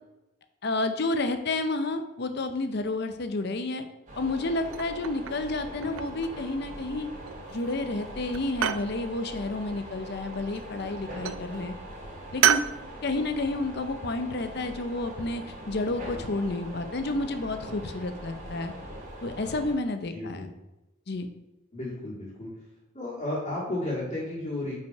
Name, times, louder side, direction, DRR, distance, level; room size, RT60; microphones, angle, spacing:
voice 1, 0.6-3.8 4.2-7.1 7.5-11.7 12.3-12.6 13.0-18.7 19.2-20.5 21.1-21.3, left 2 dB, 50° left, 8 dB, 0.6 m, -30 dB
sound 1, 4.1-19.7, right 1 dB, 35° right, 1.9 m, -42 dB
sound 2, 4.7-5.5 5.8-6.5 7.3-7.7 8.0-8.9 10.3-10.9 11.2-11.5 12.4-12.8, right 10 dB, 70° right, 0.3 m, -28 dB
voice 2, 20.1-20.5 21.7-22.5 22.9-24.8, left 1 dB, 35° left, -9 dB, 1.9 m, -33 dB
5.5 x 5.1 x 4.5 m, 0.99 s
head